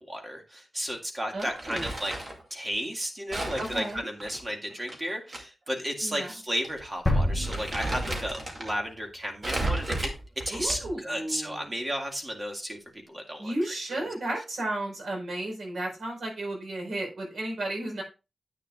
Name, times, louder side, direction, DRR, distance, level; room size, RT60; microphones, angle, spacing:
voice 1, 0.1-2.1 2.5-10.1 10.5-14.0, equal, 20° right, 2 dB, 2.0 m, -33 dB
voice 2, 1.3-1.9 3.6-4.1 6.0-6.3 10.5-11.7 13.4-18.0, right 1 dB, 85° right, 1 dB, 4.8 m, -33 dB
Crumpling crinkling, 1.4-2.4 3.3-5.4 5.7-5.8 6.6-6.8 7.2-8.7 9.4-11.0, right 2 dB, 40° right, 2.4 m, -34 dB
sound 1, 7.1-8.9, left 1 dB, 15° left, 1.9 m, -28 dB
10.0 x 8.5 x 2.4 m, 0.29 s
wide cardioid pair, 120°, 0 cm